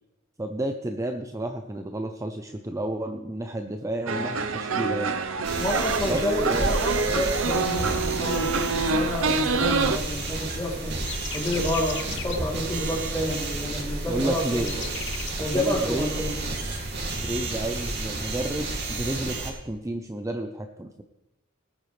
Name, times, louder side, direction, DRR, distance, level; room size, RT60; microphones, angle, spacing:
voice 1, 0.4-5.2 6.1-6.7 14.1-14.7 15.4-16.1 17.2-21.0, right 1 dB, 15° right, 5 dB, 0.6 m, -31 dB
sound 1, 4.1-10.0, right 4 dB, 85° right, 0.8 m, -26 dB
sound 2, 5.4-19.5, right 2 dB, 60° right, 2.5 m, -31 dB
voice 2, 5.5-14.6 15.4-16.4, left 1 dB, 15° left, -2 dB, 3.1 m, -29 dB
sound 3, 10.9-12.4 14.5-15.3, left 9 dB, 60° left, 1.0 m, -37 dB
18.5 x 9.0 x 3.3 m, 0.96 s
head